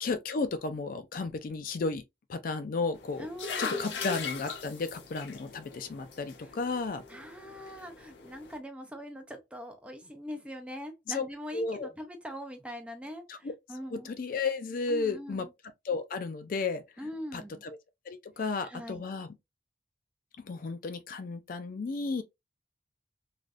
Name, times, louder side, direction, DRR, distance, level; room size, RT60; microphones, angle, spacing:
voice 1, 0.0-2.0 2.3-3.3 3.6-7.0 11.1-11.2 11.5-11.9 13.3-13.5 13.9-15.5 15.8-17.8 18.1-19.3 20.4-22.2, left 4 dB, 50° left, 0.4 m, -33 dB
sound 1, 2.9-8.6, left 5 dB, 90° left, 0.7 m, -40 dB
voice 2, 3.2-4.0 7.1-14.1 14.9-15.5 17.0-17.6 18.6-19.0, equal, 5° right, 0.5 m, -42 dB
3.3 x 2.5 x 2.4 m
head